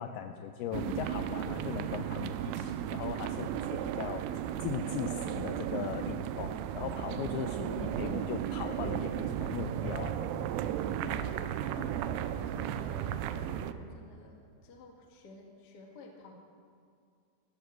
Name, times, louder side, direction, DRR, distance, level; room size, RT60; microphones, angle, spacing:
voice 1, 0.0-4.2 4.6-10.5, left 9 dB, 85° left, 7 dB, 2.2 m, -39 dB
sound 1, 0.7-13.7, right 10 dB, 85° right, 2.5 m, -35 dB
voice 2, 3.8-4.4 8.0-8.2 11.0-13.2 13.4-16.3, left 3 dB, 70° left, 1 dB, 0.9 m, -50 dB
16.0 x 13.0 x 6.4 m, 2.2 s
omnidirectional pair, 5.1 m